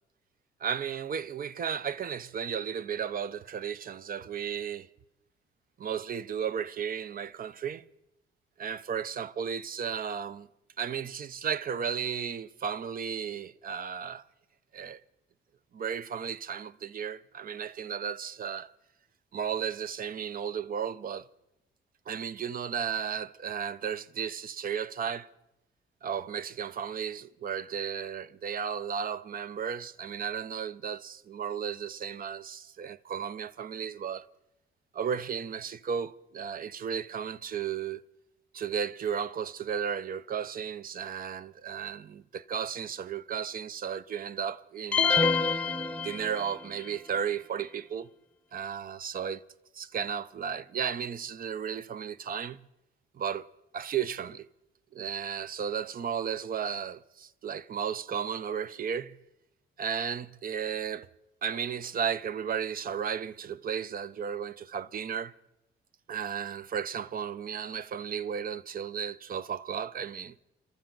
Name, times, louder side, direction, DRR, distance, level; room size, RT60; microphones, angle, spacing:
voice 1, 0.6-4.9 5.8-7.8 8.6-10.5 10.8-14.2 14.7-15.0 15.7-18.7 19.3-21.3 22.1-25.3 26.0-34.3 34.9-38.0 38.5-45.4 46.0-48.1 48.5-49.4 49.7-52.6 53.1-53.5 53.7-54.5 54.9-59.2 59.8-61.1 61.4-65.3 66.1-70.4, right 7 dB, 45° right, 0.6 m, -34 dB
sound 1, 44.9-46.7, left 5 dB, 5° left, 0.8 m, -27 dB
26.0 x 13.5 x 3.9 m
cardioid pair, 90°, 20 cm